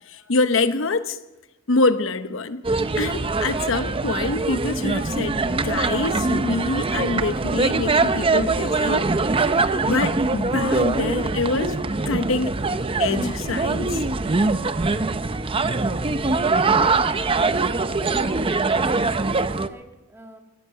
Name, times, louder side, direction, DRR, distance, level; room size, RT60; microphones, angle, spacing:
voice 1, 0.1-1.2 1.7-2.6 3.0-9.1 9.9-11.8 12.1-12.6 13.0-14.1, left 3 dB, 90° left, 11 dB, 0.9 m, -25 dB
sound 1, 2.6-19.7, right 3 dB, 30° right, 0.6 m, -23 dB
voice 2, 16.6-17.2 18.0-20.4, right 1 dB, 10° right, 3 dB, 1.8 m, -42 dB
17.5 x 13.5 x 5.7 m, 1.0 s
head